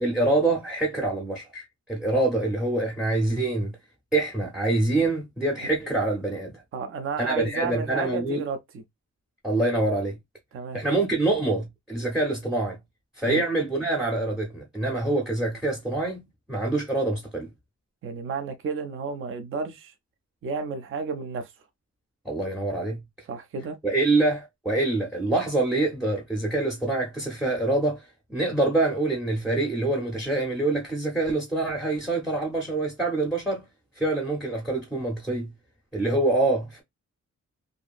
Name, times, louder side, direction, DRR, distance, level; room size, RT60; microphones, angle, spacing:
voice 1, 0.0-3.7 4.1-6.6 7.2-8.4 9.4-10.2 10.7-12.8 13.2-17.5 22.2-23.0 23.8-33.6 34.0-35.5 35.9-36.8, right 2 dB, ahead, 0.7 m, -25 dB
voice 2, 6.7-8.8 10.5-10.8 13.3-13.4 18.0-19.9 20.4-21.5 23.3-23.8, right 5 dB, 45° right, 0.5 m, -32 dB
2.6 x 2.6 x 2.3 m
wide cardioid pair, 175°, 29 cm